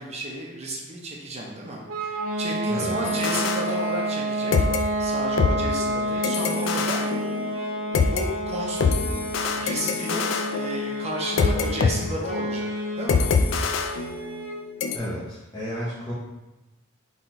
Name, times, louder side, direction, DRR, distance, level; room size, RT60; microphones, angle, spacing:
voice 1, 0.0-4.5 5.0-7.0 7.4-7.5 7.9-8.9 9.6-12.7 13.0-13.3, right 1 dB, 30° right, -1 dB, 0.7 m, -32 dB
sound 1, 1.9-14.7, right 1 dB, 90° right, 0.7 m, -29 dB
sound 2, 3.0-4.3 4.5-8.2 8.8-11.9 12.2-12.5 13.1-14.5 14.8-15.0, left 5 dB, 65° left, 0.4 m, -25 dB
voice 2, 14.9-16.1, equal, 20° left, -9 dB, 0.7 m, -32 dB
4.1 x 2.9 x 4.3 m, 1.0 s
head